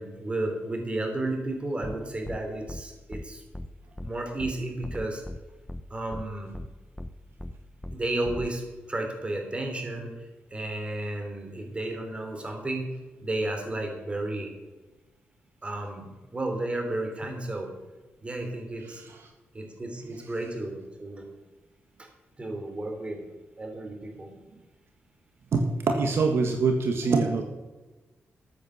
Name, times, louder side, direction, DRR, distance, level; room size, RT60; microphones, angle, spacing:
voice 1, 0.0-3.4 4.0-5.2 5.9-6.5 7.9-8.6 8.9-12.9 13.2-14.5 15.6-17.7 18.2-19.0 19.5-21.3 22.0-22.1 22.4-23.2 23.6-24.3, right 2 dB, 25° right, 4 dB, 3.2 m, -33 dB
sound 1, 1.8-2.0 2.2-2.4 2.7-2.8 3.1-3.2 3.5-3.7 4.0-4.1 4.4-4.5 4.8-5.4 5.7-5.8 6.1-6.2 6.5-6.7 7.0-7.1 7.4-7.5 7.8-8.0 8.2-8.5, left 1 dB, 10° left, 0.7 m, -37 dB
voice 2, 25.5-27.4, right 4 dB, 65° right, 4 dB, 1.4 m, -24 dB
13.5 x 8.6 x 6.4 m, 1.2 s
cardioid pair, 100°, 4 cm